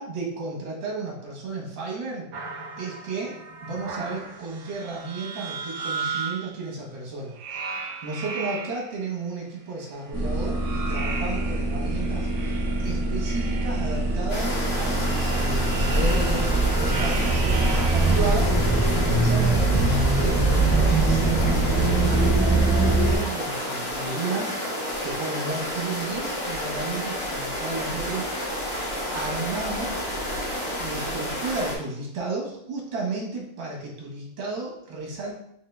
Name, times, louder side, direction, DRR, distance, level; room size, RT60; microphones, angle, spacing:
voice 1, 0.0-2.3 2.8-3.4 3.6-22.2 22.8-28.8 29.1-30.0 30.8-35.3, right 3 dB, 65° right, -2 dB, 1.9 m, -33 dB
sound 1, 2.3-6.6 7.3-9.0 10.1-18.2, right 5 dB, 85° right, 1.6 m, -36 dB
sound 2, 10.1-23.2, right 2 dB, ahead, 1.4 m, -23 dB
sound 3, 14.3-31.8, equal, 35° left, 1.3 m, -30 dB
4.1 x 3.7 x 3.3 m, 0.75 s
omnidirectional pair, 2.3 m